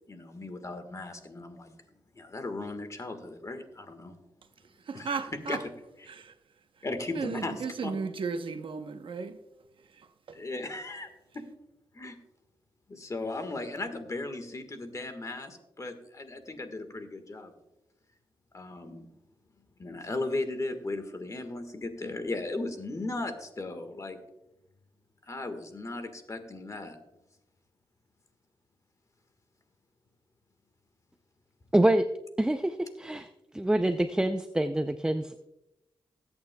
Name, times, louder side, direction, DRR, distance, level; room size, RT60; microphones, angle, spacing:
voice 1, 0.1-1.7 2.1-4.2 4.9-5.7 6.0-6.1 6.8-7.9 10.3-11.1 11.3-11.4 11.9-12.1 12.9-17.5 18.5-19.1 19.8-24.2 25.2-27.0, left 2 dB, 35° left, 1.5 m, -36 dB
voice 2, 4.9-5.6 6.1-6.3 7.1-9.4, right 5 dB, 65° right, 0.9 m, -34 dB
voice 3, 31.7-32.1 32.4-33.3 33.5-35.5, right 1 dB, 10° right, 0.5 m, -26 dB
21.0 x 8.7 x 2.3 m
cardioid pair, 90°, 9 cm